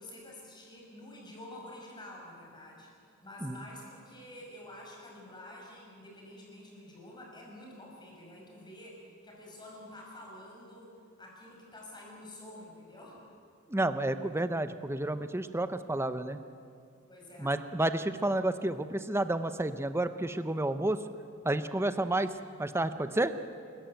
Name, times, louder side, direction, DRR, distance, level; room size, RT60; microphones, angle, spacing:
voice 1, 0.0-2.9 3.2-13.2 17.1-17.6, left 1 dB, 20° left, -2 dB, 5.8 m, -49 dB
voice 2, 13.7-16.4 17.4-21.0 21.4-22.3 22.6-23.3, right 1 dB, 10° right, 10 dB, 0.7 m, -30 dB
29.0 x 14.0 x 9.1 m, 2.4 s
head